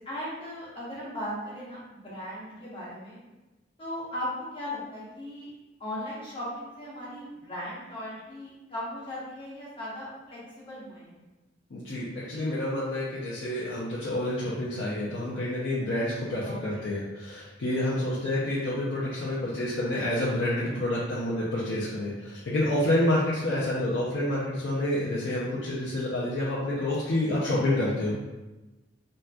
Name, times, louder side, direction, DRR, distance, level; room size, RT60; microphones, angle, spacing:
voice 1, 0.0-3.2 3.8-5.5 5.8-11.2 16.5-16.9, left 1 dB, 30° left, -8 dB, 1.0 m, -37 dB
voice 2, 11.7-28.1, left 1 dB, 80° left, -8 dB, 0.6 m, -28 dB
4.0 x 2.3 x 2.3 m, 1.1 s
head